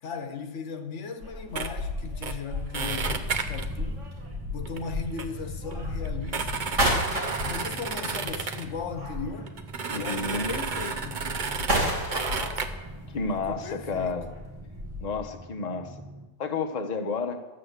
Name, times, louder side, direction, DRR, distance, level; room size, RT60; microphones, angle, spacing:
voice 1, 0.0-4.1 4.5-7.0 7.4-9.5 9.9-11.3 13.3-14.2, left 5 dB, 75° left, 1.3 m, -37 dB
sound 1, 1.2-9.6 10.0-15.3, equal, 85° right, 3.5 m, -33 dB
sound 2, 1.5-1.7 2.2-2.3 2.7-3.7 4.6-4.8 5.2-5.3 5.7-5.8 6.0-8.7 9.5-11.8 12.1-12.7, right 5 dB, 45° right, 0.9 m, -32 dB
Drum, 2.8-16.3, right 1 dB, 15° right, 1.0 m, -44 dB
voice 2, 9.9-10.5 13.1-14.3 15.0-16.0 16.4-17.4, left 4 dB, 35° left, 1.0 m, -31 dB
13.0 x 8.2 x 8.0 m
omnidirectional pair, 1.2 m